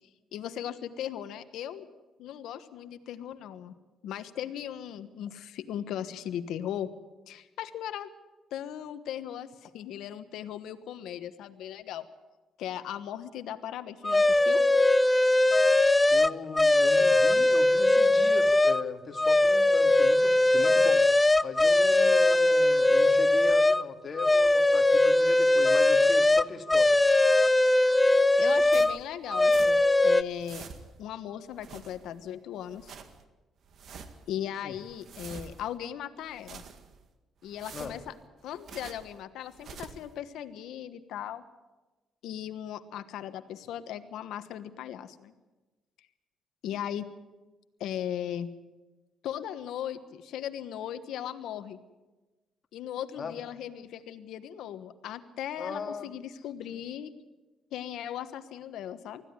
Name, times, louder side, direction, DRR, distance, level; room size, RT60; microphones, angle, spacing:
voice 1, 0.3-1.9 2.2-3.7 4.0-6.9 7.3-8.1 8.5-12.0 12.6-14.6 28.0-30.6 31.0-32.9 34.3-36.6 37.4-38.1 38.4-41.4 42.2-45.3 46.6-47.1 47.8-48.5 49.2-51.8 52.7-57.1 57.7-59.2, left 10 dB, 85° left, 10 dB, 1.2 m, -38 dB
sound 1, 14.0-18.8 19.2-23.8 24.2-29.0 29.3-30.2, left 2 dB, 15° left, 0.6 m, -21 dB
voice 2, 16.1-21.0 21.4-27.0 34.6-34.8 37.7-38.0 53.2-53.3 55.6-56.1, left 5 dB, 45° left, 5 dB, 2.2 m, -38 dB
sound 2, 28.7-30.0 30.2-31.1 31.5-32.3 32.6-33.2 33.6-34.3 34.7-35.8 36.2-37.0 37.4-39.1 39.5-40.1, right 6 dB, 60° right, 1.9 m, -47 dB
20.0 x 14.5 x 9.7 m, 1.2 s
cardioid pair, 90°, 0 cm